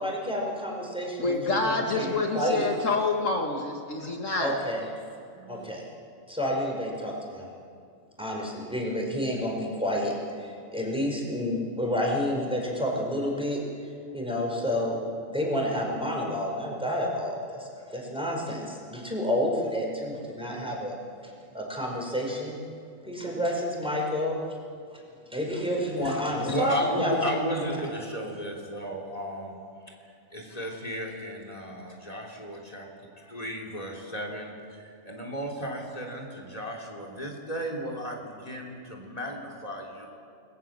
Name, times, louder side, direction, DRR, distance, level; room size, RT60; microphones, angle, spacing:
voice 1, 0.0-1.6 1.9-2.1 2.3-2.7 4.4-4.8 5.5-5.9 6.3-7.5 8.2-13.6 14.1-15.0 15.3-21.0 21.5-22.6 23.0-24.4 25.3-27.8, equal, 5° right, -1 dB, 5.2 m, -29 dB
voice 2, 1.2-4.6, left 3 dB, 65° left, 2 dB, 2.2 m, -27 dB
voice 3, 5.3-5.7 26.0-26.2 26.5-29.6 30.3-40.1, equal, 25° left, 1 dB, 3.5 m, -34 dB
29.5 x 21.0 x 7.6 m, 2.4 s
omnidirectional pair, 1.4 m